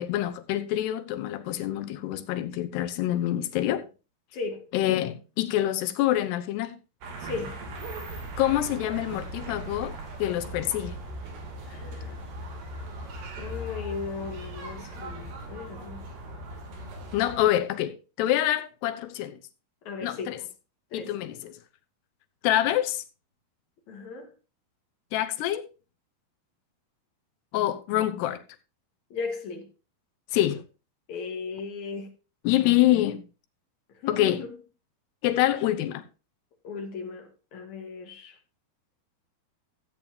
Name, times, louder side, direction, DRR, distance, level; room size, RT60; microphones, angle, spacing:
voice 1, 0.0-3.9 4.7-6.8 8.4-9.9 10.2-11.0 17.1-19.4 20.0-20.4 20.9-21.5 22.4-23.0 25.1-25.7 27.5-28.4 30.3-30.6 32.4-33.2 34.1-34.4 35.2-36.0, left 13 dB, 85° left, 3.0 m, -26 dB
voice 2, 4.3-4.7 7.2-7.5 11.7-12.2 13.4-16.1 19.9-20.4 20.9-21.1 23.9-24.3 29.1-29.7 31.1-32.1 34.0-34.5 36.6-38.3, left 4 dB, 55° left, 2.7 m, -36 dB
sound 1, 7.0-17.4, right 1 dB, 80° right, 4.9 m, -39 dB
14.5 x 8.7 x 2.8 m
omnidirectional pair, 4.6 m